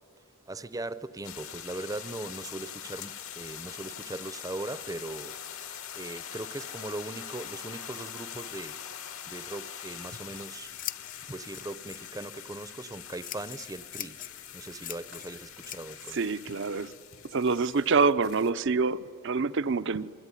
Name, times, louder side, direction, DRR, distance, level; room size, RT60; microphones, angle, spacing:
voice 1, 0.5-5.3 5.9-8.8 9.3-10.7 11.3-14.2 14.5-16.2, right 2 dB, 15° right, 15 dB, 0.7 m, -39 dB
sound 1, 1.2-18.5, left 9 dB, 75° left, 1.9 m, -43 dB
Scissors, 9.9-18.0, left 11 dB, 40° left, 0.7 m, -45 dB
voice 2, 16.1-16.9 17.3-20.1, right 4 dB, 55° right, 15 dB, 0.6 m, -26 dB
26.5 x 22.5 x 9.9 m, 2.5 s
head